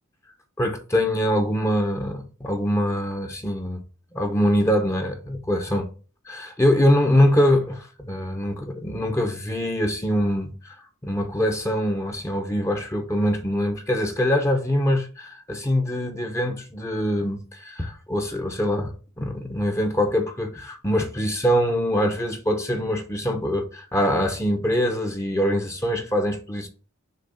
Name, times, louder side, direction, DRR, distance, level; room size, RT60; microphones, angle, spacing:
voice 1, 0.6-3.8 4.1-5.9 6.3-10.8 11.0-26.7, equal, 15° left, 0.9 m, -23 dB
6.6 x 3.1 x 5.6 m
head